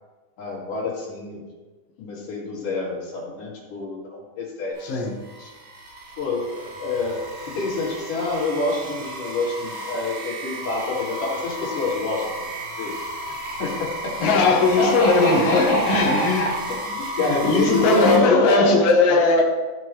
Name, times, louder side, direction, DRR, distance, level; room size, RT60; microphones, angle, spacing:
voice 1, 0.4-1.4 2.0-4.9 5.4-5.5 6.2-7.2 7.5-12.5 12.8-12.9 13.6-14.2 14.8-18.7 19.1-19.2, left 2 dB, 85° left, -4 dB, 3.8 m, -26 dB
voice 2, 4.8-5.2 14.2-16.5 17.2-19.4, left 3 dB, 60° left, -2 dB, 2.1 m, -19 dB
sound 1, 4.8-18.2, right 1 dB, 85° right, 3.8 m, -33 dB
14.0 x 6.1 x 3.1 m, 1.2 s
omnidirectional pair, 3.6 m